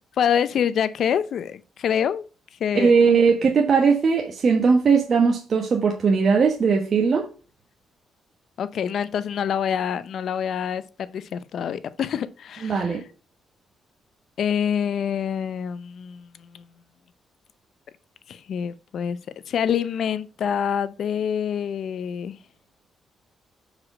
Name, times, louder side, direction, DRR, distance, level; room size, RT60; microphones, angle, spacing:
voice 1, 0.2-2.2 2.6-3.2 8.6-13.0 14.4-16.7 18.3-19.2 19.5-22.4, left 8 dB, 70° left, 0.6 m, -26 dB
voice 2, 2.7-7.3 12.6-13.0, right 5 dB, 55° right, 1.2 m, -19 dB
5.8 x 4.9 x 4.9 m
supercardioid pair, 65°, 0 cm